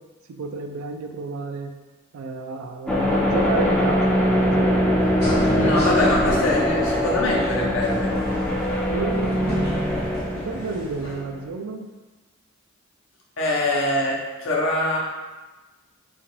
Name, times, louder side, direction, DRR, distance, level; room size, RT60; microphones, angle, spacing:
voice 1, 0.3-1.7 2.1-5.0 5.4-6.1 8.9-9.6 10.3-11.9, right 3 dB, 90° right, 5 dB, 0.3 m, -31 dB
sound 1, 2.9-11.4, equal, 5° left, 0.4 m, -22 dB
sound 2, 5.2-11.2, left 1 dB, 50° left, 1.0 m, -32 dB
voice 2, 5.6-8.2 11.0-11.2 13.4-15.0, left 1 dB, 65° left, -3 dB, 0.7 m, -24 dB
2.8 x 2.4 x 3.0 m, 1.2 s
head